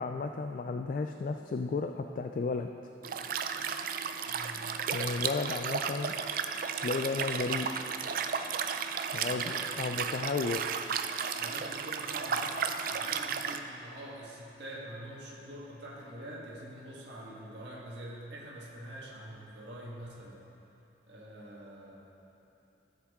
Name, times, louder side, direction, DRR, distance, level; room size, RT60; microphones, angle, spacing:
voice 1, 0.0-2.7 4.9-6.1 6.8-7.7 9.1-10.6, left 4 dB, 45° left, 5 dB, 0.3 m, -33 dB
Liquid, 3.0-13.6, right 6 dB, 50° right, 0.4 m, -34 dB
voice 2, 4.2-4.8 9.2-10.1 11.4-20.5 21.0-22.1, right 1 dB, 75° right, -4 dB, 1.6 m, -45 dB
14.0 x 7.3 x 3.6 m, 2.9 s
head